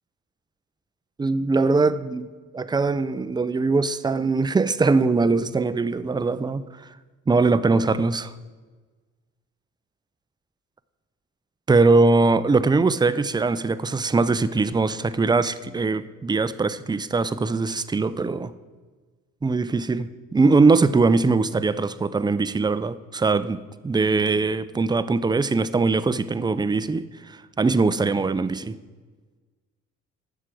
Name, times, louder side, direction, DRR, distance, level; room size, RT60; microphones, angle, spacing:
voice 1, 1.2-2.3 2.5-6.6 7.3-8.3 11.7-18.5 19.4-28.8, right 3 dB, 15° right, 14 dB, 0.4 m, -21 dB
8.2 x 6.4 x 7.6 m, 1.4 s
cardioid pair, 90°, 30 cm